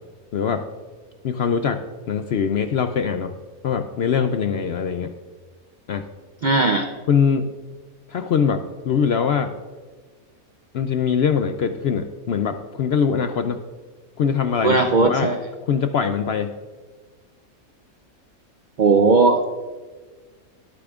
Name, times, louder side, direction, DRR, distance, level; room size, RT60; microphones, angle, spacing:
voice 1, 0.3-0.7 1.2-3.4 3.6-5.1 5.9-6.0 7.1-7.5 8.1-9.5 10.7-13.6 14.2-15.3 15.6-16.5, left 6 dB, 65° left, 8 dB, 0.6 m, -22 dB
voice 2, 6.4-6.9 14.6-15.4 18.8-19.6, right 3 dB, 65° right, 6 dB, 0.4 m, -17 dB
19.5 x 8.5 x 2.4 m, 1.4 s
omnidirectional pair, 1.5 m